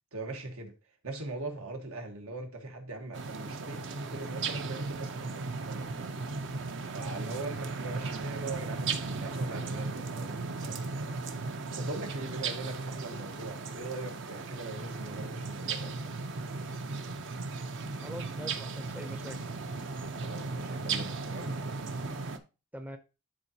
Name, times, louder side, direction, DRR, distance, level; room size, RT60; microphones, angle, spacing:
voice 1, 0.1-0.8 1.0-6.1 6.9-11.2 11.5-16.2 20.2-21.5, right 2 dB, 85° right, 1.4 m, -41 dB
sound 1, 3.1-22.4, right 4 dB, 60° right, 0.6 m, -36 dB
voice 2, 18.0-19.4 22.7-23.0, equal, 10° right, 0.5 m, -42 dB
10.0 x 3.9 x 2.8 m
head